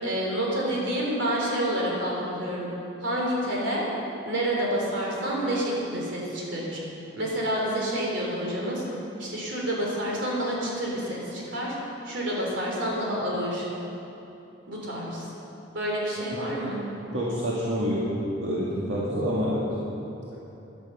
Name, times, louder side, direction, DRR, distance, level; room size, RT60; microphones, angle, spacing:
voice 1, 0.0-2.7 3.0-3.8 4.2-6.8 7.2-8.8 9.2-11.7 12.0-13.7 14.7-15.3 15.7-16.8, right 1 dB, 70° right, -3 dB, 3.6 m, -28 dB
voice 2, 17.1-18.0 18.4-19.6, equal, 85° right, -6 dB, 1.9 m, -27 dB
14.5 x 11.0 x 5.6 m, 3.0 s
head